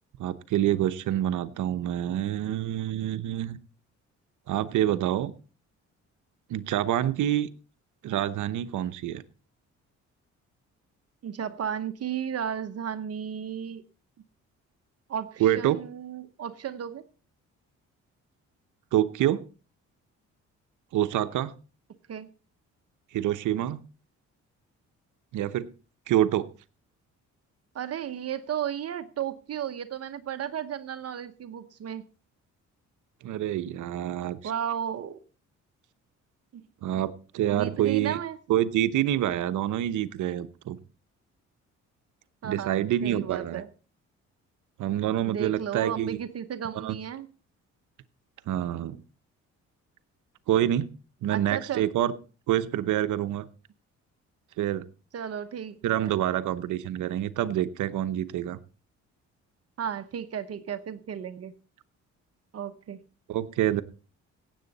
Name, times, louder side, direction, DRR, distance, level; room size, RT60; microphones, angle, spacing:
voice 1, 0.2-3.6 4.5-5.3 6.5-7.5 8.0-9.2 15.4-15.8 18.9-19.4 20.9-21.5 23.1-23.8 25.3-25.7 26.1-26.5 33.2-34.4 36.8-38.2 38.5-40.8 42.4-43.6 44.8-46.2 46.8-47.0 48.5-49.0 50.5-50.9 51.2-52.1 52.5-53.5 54.6-54.8 55.8-58.6 63.3-63.8, right 12 dB, 80° right, 13 dB, 0.9 m, -27 dB
voice 2, 11.2-13.8 15.1-17.0 22.1-22.3 27.7-32.1 34.4-35.2 36.5-36.6 37.4-38.4 42.4-43.7 45.2-47.3 51.3-51.9 55.1-56.1 59.8-61.5 62.5-63.0, right 9 dB, 55° right, 10 dB, 1.0 m, -34 dB
17.0 x 8.1 x 4.1 m, 0.35 s
cardioid pair, 90°, 30 cm